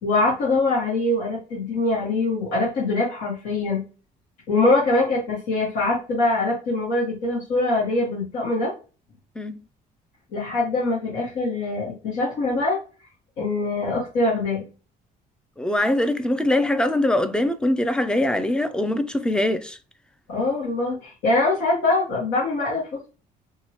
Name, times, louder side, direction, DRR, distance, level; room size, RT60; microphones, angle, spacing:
voice 1, 0.0-3.8 4.5-8.7 10.3-12.8 13.4-14.6 20.3-23.1, left 2 dB, 90° left, 1.4 m, -23 dB
voice 2, 15.6-19.8, left 1 dB, 5° left, 0.3 m, -22 dB
2.9 x 2.7 x 2.9 m
cardioid pair, 110°, 17 cm